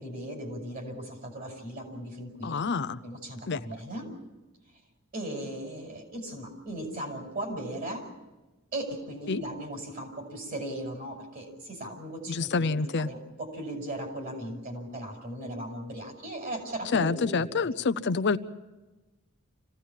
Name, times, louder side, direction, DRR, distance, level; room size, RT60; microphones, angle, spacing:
voice 1, 0.0-2.6 3.0-4.1 5.1-8.1 8.7-17.7, right 1 dB, 40° right, 3 dB, 5.6 m, -37 dB
voice 2, 2.4-3.0 3.5-3.6 9.3-9.4 12.3-13.1 16.9-18.4, left 4 dB, 55° left, 12 dB, 0.6 m, -27 dB
26.0 x 16.5 x 7.3 m, 1.1 s
head